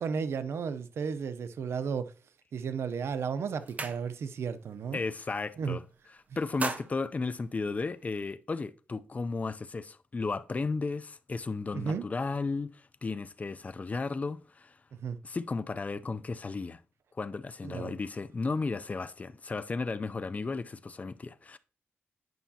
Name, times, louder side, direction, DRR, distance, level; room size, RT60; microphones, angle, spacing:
voice 1, 0.0-2.1 2.5-5.0 5.6-5.8 11.7-12.1 15.0-15.2 17.6-17.9, right 6 dB, 80° right, 0.6 m, -33 dB
sound 1, 2.8-3.0 3.3-4.5 4.8-5.1 5.4-6.0 6.3-8.2, right 3 dB, 35° right, 0.7 m, -39 dB
voice 2, 4.9-5.8 6.1-14.8 15.2-16.8 17.1-21.6, left 4 dB, 35° left, 0.5 m, -34 dB
9.2 x 5.6 x 2.8 m
cardioid pair, 85°, 4 cm